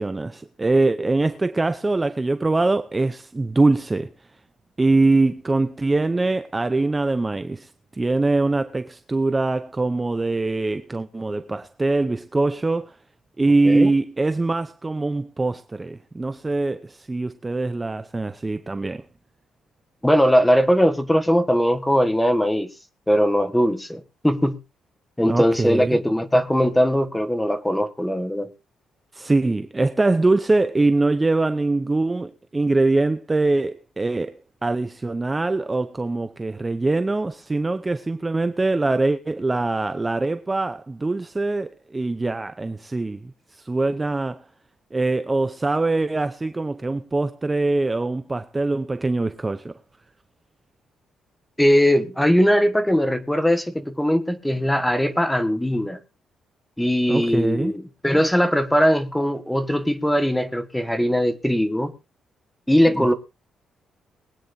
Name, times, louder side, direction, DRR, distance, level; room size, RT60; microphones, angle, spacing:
voice 1, 0.0-4.1 4.8-12.9 13.4-19.0 25.2-26.0 29.1-44.4 44.9-49.7 57.1-57.7 62.9-63.1, right 2 dB, 15° right, 0.6 m, -23 dB
voice 2, 20.0-22.7 23.1-24.6 25.2-28.5 51.6-56.0 56.8-61.9 62.7-63.1, equal, 5° left, 1.4 m, -20 dB
22.5 x 9.2 x 2.7 m
cardioid pair, 140°, 0 cm